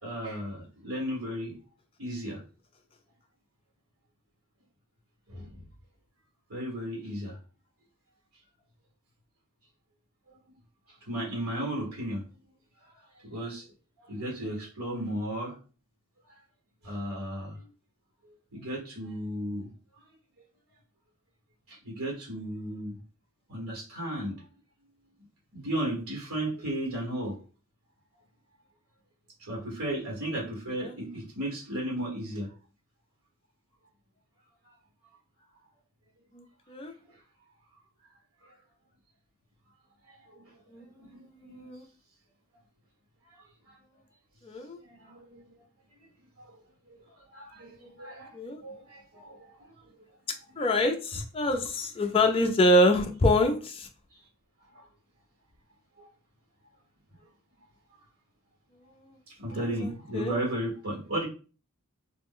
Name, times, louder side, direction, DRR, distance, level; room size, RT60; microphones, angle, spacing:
voice 1, 0.0-1.6 2.0-2.4 5.3-5.6 6.5-7.4 10.9-12.2 12.8-13.7 14.0-15.6 16.2-16.3 16.8-17.7 18.2-19.7 20.4-20.5 21.7-23.0 23.5-24.5 25.5-27.4 29.4-32.5 34.6-34.7 37.0-37.2 38.4-38.6 40.1-41.7 43.3-43.8 44.8-45.6 46.0-46.1 46.4-50.1 50.6-50.7 54.1-54.3 54.7-54.9 56.0-56.1 59.3-61.2, right 1 dB, 80° right, -3 dB, 1.2 m, -35 dB
voice 2, 36.3-36.9 40.7-40.9 41.2-41.8 44.4-44.8 47.8-47.9 48.3-48.6 50.6-53.9 59.8-60.4, left 1 dB, 25° left, 5 dB, 0.3 m, -26 dB
2.4 x 2.1 x 3.6 m, 0.36 s
head